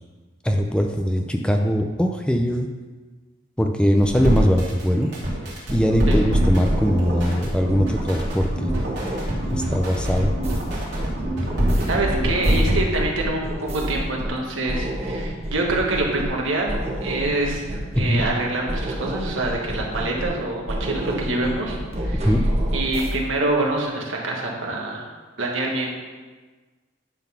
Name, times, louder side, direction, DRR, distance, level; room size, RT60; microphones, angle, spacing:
voice 1, 0.4-2.7 3.6-5.1 5.7-8.7 9.5-10.3 18.1-18.2 22.2-22.4, equal, 5° left, 3 dB, 0.4 m, -21 dB
sound 1, 4.0-12.8, right 1 dB, 55° right, 2.8 m, -24 dB
sound 2, 5.7-6.4 6.7-8.4 8.7-14.4 14.7-16.4 16.7-18.4 18.7-20.4 20.7-23.1, equal, 30° right, 1.3 m, -29 dB
voice 2, 11.9-21.8 22.0-22.3 22.7-25.0 25.4-26.0, right 2 dB, 70° right, -1 dB, 1.5 m, -26 dB
10.5 x 4.0 x 5.8 m, 1.3 s
head